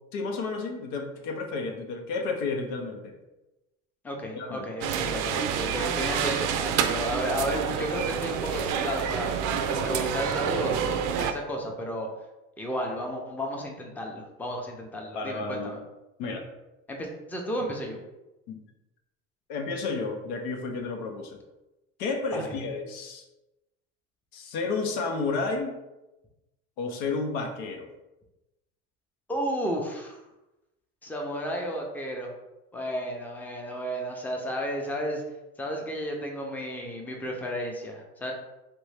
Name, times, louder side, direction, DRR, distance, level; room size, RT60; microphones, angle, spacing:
voice 1, 0.1-3.2 4.3-4.7 5.1-5.4 15.2-15.7 16.2-16.4 18.5-18.6 19.5-21.4 22.0-23.2 24.3-25.7 26.8-27.9, left 3 dB, 85° left, 3 dB, 0.7 m, -31 dB
voice 2, 4.0-9.3 9.7-12.1 12.6-15.8 16.9-18.0 22.3-22.5 29.3-30.2 31.0-32.3 32.7-35.2 35.6-38.3, equal, 5° left, 1 dB, 0.5 m, -33 dB
sound 1, 4.8-11.3, right 7 dB, 60° right, 0.4 m, -28 dB
3.2 x 2.6 x 3.2 m, 1.0 s
supercardioid pair, 100°, 35 cm